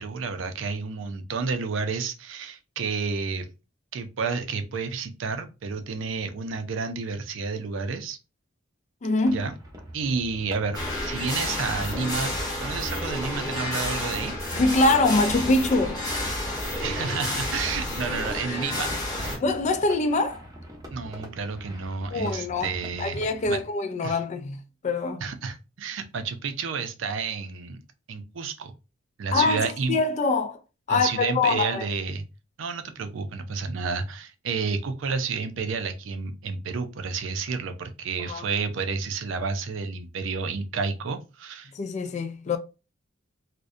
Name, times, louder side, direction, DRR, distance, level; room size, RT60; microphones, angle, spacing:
voice 1, 0.0-3.5 3.9-8.2 9.3-9.5 9.9-12.3 12.6-14.3 16.8-18.9 19.2-19.4 20.9-23.6 24.0-24.2 25.2-27.8 28.1-28.7 29.2-30.0 30.9-32.2 32.6-41.7, right 5 dB, 70° right, 0.4 m, -30 dB
voice 2, 9.0-9.4 14.6-16.0 19.4-20.5 22.1-22.7 23.0-25.2 29.3-30.6 30.9-31.9 38.2-38.5 41.7-42.6, left 3 dB, 35° left, 0.3 m, -24 dB
sound 1, 9.2-23.6, equal, 20° right, 0.6 m, -44 dB
sound 2, 10.7-19.4, left 1 dB, 20° left, 1.0 m, -30 dB
2.5 x 2.1 x 2.4 m
head